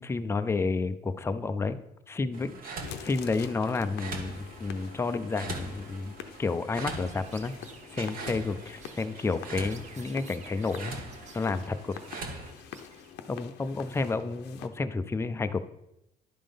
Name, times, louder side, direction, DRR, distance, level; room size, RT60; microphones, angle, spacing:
voice 1, 0.0-1.8 2.1-2.7 3.0-6.1 6.4-7.5 7.9-11.0 11.3-12.0 13.3-15.6, left 3 dB, 15° left, 10 dB, 0.4 m, -30 dB
sound 1, 2.3-12.5, right 3 dB, 60° right, 1.4 m, -42 dB
sound 2, 2.8-14.7, left 9 dB, 80° left, 0.7 m, -46 dB
Chirp tweet, 7.0-13.9, right 5 dB, 45° right, 0.8 m, -54 dB
11.0 x 3.7 x 5.2 m, 0.86 s
cardioid pair, 110°, 17 cm